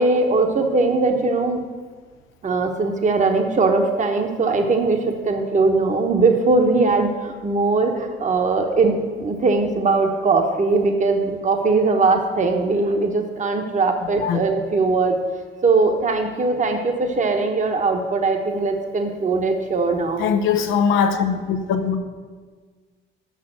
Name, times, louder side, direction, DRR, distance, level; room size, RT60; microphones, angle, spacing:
voice 1, 0.0-1.6 2.4-5.0 5.2-15.2 15.6-20.3, right 3 dB, 40° right, 4 dB, 1.1 m, -20 dB
voice 2, 20.2-22.0, left 6 dB, 90° left, 6 dB, 0.8 m, -21 dB
6.8 x 5.9 x 7.5 m, 1.5 s
cardioid pair, 90°, 20 cm